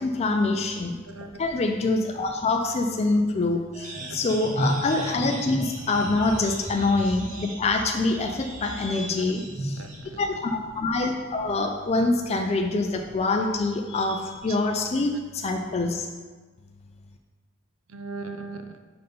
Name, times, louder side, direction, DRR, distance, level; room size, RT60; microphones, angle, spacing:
voice 1, 0.0-1.0 1.4-16.1, left 3 dB, 30° left, 3 dB, 0.4 m, -25 dB
voice 2, 1.0-1.4 6.4-6.5 8.9-10.2 14.5-14.6 17.9-18.8, right 3 dB, 70° right, 7 dB, 0.6 m, -40 dB
sound 1, 3.7-10.0, right 1 dB, 40° right, 1.2 m, -34 dB
5.3 x 4.2 x 5.3 m, 1.4 s
head